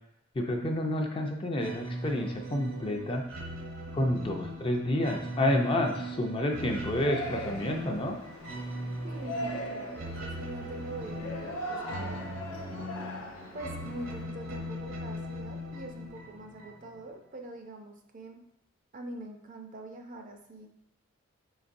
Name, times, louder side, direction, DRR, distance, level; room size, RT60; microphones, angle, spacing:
voice 1, 0.4-3.2 3.9-8.2, left 1 dB, 25° left, 3 dB, 0.4 m, -29 dB
sound 1, 1.6-17.1, equal, 70° right, 0.8 m, -40 dB
Yell, 6.5-14.2, left 1 dB, 85° left, 0.7 m, -41 dB
voice 2, 9.0-12.3 13.5-18.4 18.9-20.7, right 1 dB, 40° right, 4 dB, 0.5 m, -43 dB
5.0 x 4.0 x 2.5 m, 0.80 s
head